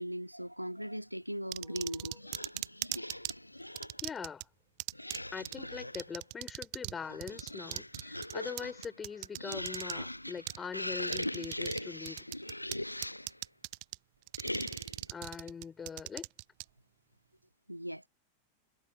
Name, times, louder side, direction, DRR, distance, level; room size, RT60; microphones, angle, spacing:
voice 1, 0.0-2.2 17.7-18.1, equal, 90° right, 1.9 m, -39 dB
sound 1, 1.5-3.3 3.8-4.4 4.8-5.2 5.5-5.6 5.9-7.0 7.2-9.9 10.5-10.6 11.1-11.8 12.1-12.8 13.0-14.0 14.3-16.6, right 40 dB or more, 45° right, 0.6 m, -38 dB
sound 2, 2.1-4.0 4.9-6.2 6.9-13.4 14.4-15.0, left 1 dB, 85° left, 1.0 m, -40 dB
voice 2, 4.0-4.5 5.3-12.2 15.1-16.3, left 6 dB, 20° left, 4.9 m, -42 dB
figure-of-eight pair, 90°, 0 cm